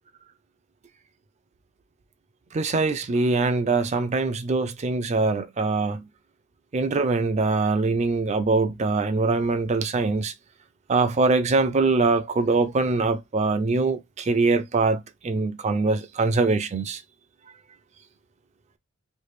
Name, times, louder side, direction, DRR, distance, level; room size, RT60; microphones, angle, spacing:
voice 1, 2.5-6.1 6.7-10.3 10.9-17.0, right 3 dB, 35° right, 0.4 m, -23 dB
3.2 x 2.4 x 3.1 m
head